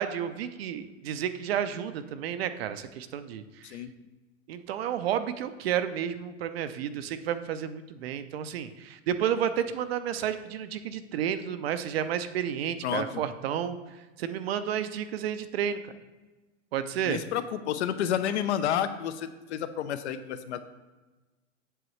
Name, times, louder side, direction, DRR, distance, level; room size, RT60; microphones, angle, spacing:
voice 1, 0.0-3.8 4.5-13.8 14.2-15.9 16.7-17.2, right 9 dB, 50° right, 11 dB, 0.5 m, -31 dB
voice 2, 12.8-13.2 17.0-20.6, left 9 dB, 60° left, 11 dB, 0.7 m, -30 dB
7.9 x 6.8 x 3.1 m, 1.2 s
hypercardioid pair, 145°, 39 cm